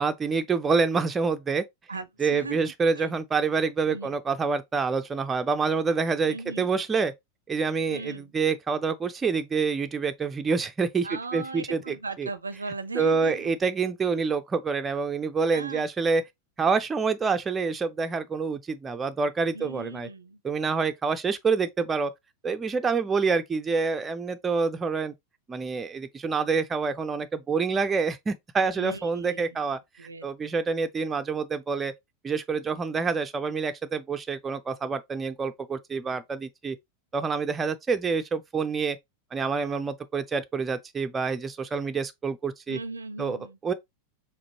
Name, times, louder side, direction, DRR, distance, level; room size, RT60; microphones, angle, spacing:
voice 1, 0.0-1.6 2.2-7.1 7.5-12.3 12.9-16.2 16.6-20.1 20.4-22.1 22.4-25.1 25.5-29.8 30.2-31.9 32.2-36.8 37.1-39.0 39.3-42.8 43.2-43.7, right 5 dB, 15° right, 0.5 m, -27 dB
voice 2, 1.9-2.6 3.0-3.1 3.9-4.2 6.3-6.7 7.9-8.3 11.0-13.5 15.5-15.8 19.5-20.4 28.8-29.4 30.0-30.5 42.7-43.6, right 3 dB, 75° right, 0.5 m, -38 dB
5.0 x 3.5 x 2.8 m
figure-of-eight pair, 90°, 0 cm